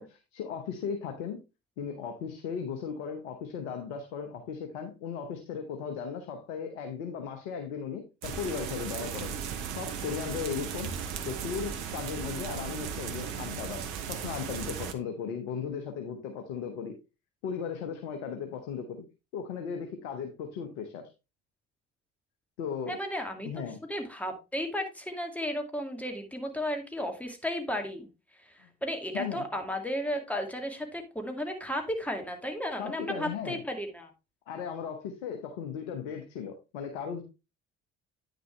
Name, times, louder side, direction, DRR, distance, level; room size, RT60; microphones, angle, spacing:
voice 1, 0.0-1.4 1.8-10.9 11.2-17.0 17.4-19.0 19.3-21.1 22.6-23.0 23.4-23.8 29.1-29.5 32.8-33.6 34.5-37.2, left 7 dB, 75° left, 5 dB, 1.2 m, -37 dB
sound 1, 8.2-14.9, right 7 dB, 70° right, 1.1 m, -36 dB
voice 2, 22.9-23.5 23.9-28.1 28.3-34.1, equal, 5° left, 4 dB, 2.3 m, -34 dB
9.3 x 6.5 x 3.2 m, 0.27 s
hypercardioid pair, 50°, 35 cm